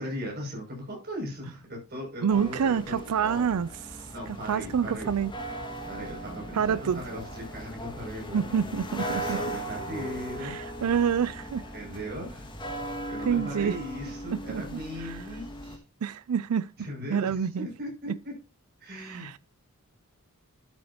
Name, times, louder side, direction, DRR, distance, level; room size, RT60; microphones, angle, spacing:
voice 1, 0.0-3.5 4.1-5.1 5.9-8.5 9.0-10.6 11.7-12.5 13.1-15.8 16.8-18.3 18.8-19.4, equal, 45° right, 6.6 m, -38 dB
voice 2, 2.2-4.0 4.3-5.3 6.5-7.0 8.3-9.4 10.4-11.6 13.3-13.8 14.3-15.2 16.0-16.7 17.1-17.7 18.1-18.2 18.9-19.4, right 7 dB, 85° right, 0.4 m, -28 dB
sound 1, 2.3-15.8, right 1 dB, 20° left, 1.9 m, -38 dB
13.0 x 8.6 x 2.9 m
head